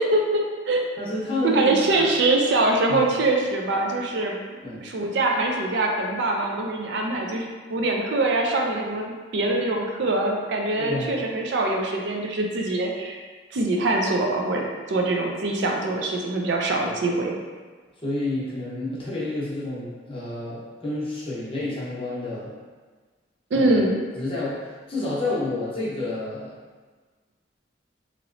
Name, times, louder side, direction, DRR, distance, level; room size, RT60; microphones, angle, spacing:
voice 1, 0.0-0.8 1.4-4.4 4.8-13.2 13.5-17.3 23.5-24.0, right 2 dB, 70° right, 1 dB, 0.4 m, -23 dB
voice 2, 1.0-2.1 2.9-3.0 4.6-4.8 10.8-11.1 18.0-22.5 23.5-23.8 24.1-26.6, left 2 dB, 30° left, -7 dB, 0.8 m, -29 dB
3.0 x 2.9 x 2.5 m, 1.4 s
head